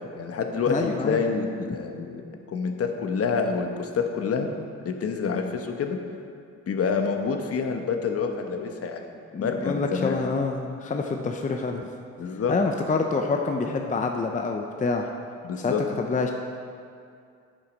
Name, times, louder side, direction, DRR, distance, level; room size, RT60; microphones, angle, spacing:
voice 1, 0.1-4.5 4.8-6.0 6.7-10.1 12.2-12.5 15.4-15.8, left 5 dB, 50° left, 4 dB, 1.0 m, -27 dB
voice 2, 0.7-1.3 9.3-11.9 12.5-15.1 15.6-16.3, left 4 dB, 25° left, 3 dB, 0.6 m, -27 dB
8.6 x 7.0 x 5.2 m, 2.4 s
cardioid pair, 90°, 30 cm